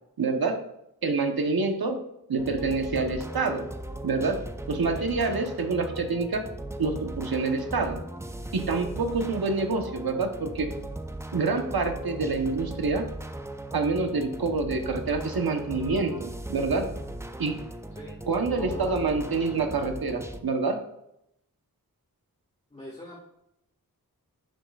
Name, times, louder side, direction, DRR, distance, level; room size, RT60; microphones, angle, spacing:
voice 1, 0.2-0.6 1.0-2.0 2.3-3.7 4.0-4.4 4.7-6.4 6.8-8.0 8.5-10.7 11.3-13.1 13.7-16.9 17.4-17.6 18.3-20.8, right 3 dB, 85° right, 5 dB, 1.0 m, -27 dB
sound 1, 2.4-20.4, right 1 dB, 10° right, 0.6 m, -38 dB
voice 2, 18.6-19.0 22.7-23.2, left 1 dB, 20° left, -5 dB, 1.8 m, -41 dB
11.0 x 7.3 x 2.4 m, 0.81 s
wide cardioid pair, 55°, 36 cm